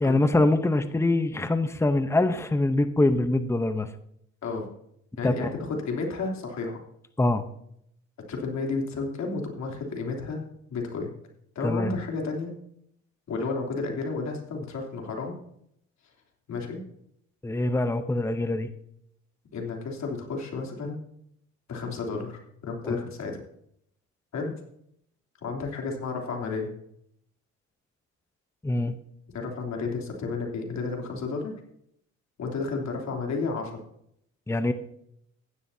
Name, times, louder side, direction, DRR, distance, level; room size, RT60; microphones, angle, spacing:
voice 1, 0.0-3.9 5.2-5.5 7.2-7.5 11.6-11.9 17.4-18.7 22.8-23.0 28.6-28.9 34.5-34.7, left 2 dB, 10° left, 9 dB, 0.8 m, -24 dB
voice 2, 5.2-6.8 8.3-10.4 10.7-11.1 11.5-12.5 13.3-15.3 16.5-16.8 19.5-21.0 21.7-23.4 24.3-24.5 25.4-26.7 29.3-31.6 32.4-33.8, left 4 dB, 65° left, 1 dB, 3.2 m, -32 dB
15.5 x 11.0 x 2.8 m, 0.72 s
cardioid pair, 90°, 30 cm